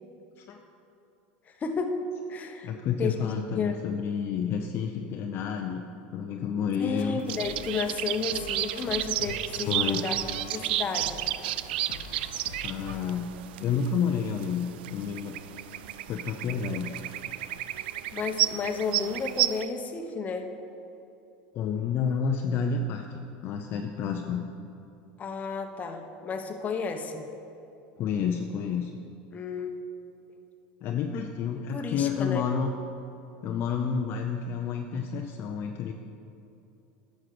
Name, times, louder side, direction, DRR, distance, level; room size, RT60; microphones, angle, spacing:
voice 1, 1.6-2.0 2.3-2.7 3.0-3.3 3.5-3.8 6.8-10.1 10.5-11.2 18.1-20.5 25.2-27.2 29.3-29.8 31.7-32.4, left 5 dB, 30° left, 5 dB, 1.0 m, -32 dB
voice 2, 2.6-5.8 6.1-7.2 9.7-10.0 12.6-13.3 13.6-15.4 16.1-16.9 21.5-24.5 28.0-28.9 30.8-32.7 33.4-35.9, left 6 dB, 45° left, 3 dB, 0.6 m, -30 dB
sound 1, 7.0-13.0, left 5 dB, 80° left, 0.9 m, -45 dB
sound 2, 7.3-19.6, right 14 dB, 80° right, 0.3 m, -32 dB
9.9 x 6.3 x 6.0 m, 2.7 s
supercardioid pair, 110°, 5 cm